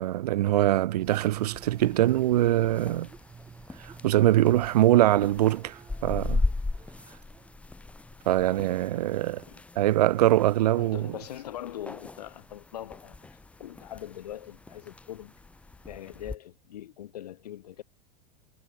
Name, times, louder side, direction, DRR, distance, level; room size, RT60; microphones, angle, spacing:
voice 1, 0.0-3.1 3.8-6.4 8.3-9.4 9.8-11.1, right 14 dB, 85° right, 0.5 m, -23 dB
sound 1, 1.0-16.4, left 3 dB, 5° left, 0.6 m, -38 dB
sound 2, 1.0-8.6, right 5 dB, 15° right, 3.2 m, -51 dB
voice 2, 10.8-13.2 13.6-15.3 15.8-17.8, left 12 dB, 80° left, 5.9 m, -41 dB
hypercardioid pair, 115°, 20 cm